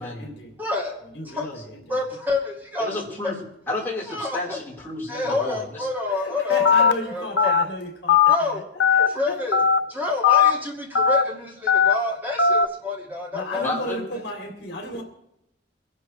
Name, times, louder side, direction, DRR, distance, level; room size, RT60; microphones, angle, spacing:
voice 1, 0.0-0.5 1.0-1.8 6.1-9.4 13.3-15.0, left 1 dB, 65° left, 2 dB, 2.9 m, -34 dB
voice 2, 0.6-0.9 1.2-1.5 1.9-2.9 3.2-3.3 4.1-4.4 5.1-7.5 8.3-8.6 9.1-9.6 9.9-13.9, left 3 dB, 10° right, -2 dB, 2.3 m, -28 dB
voice 3, 2.8-3.4 3.7-5.9 13.6-14.0, left 2 dB, 10° left, -5 dB, 4.5 m, -31 dB
Telephone, 6.7-6.9 7.4-7.6 8.1-8.4 8.8-9.1 9.5-9.8 10.2-10.5 11.0-11.2 11.7-11.9 12.4-12.7, left 6 dB, 80° left, 0.8 m, -17 dB
24.5 x 11.0 x 3.4 m, 0.82 s
head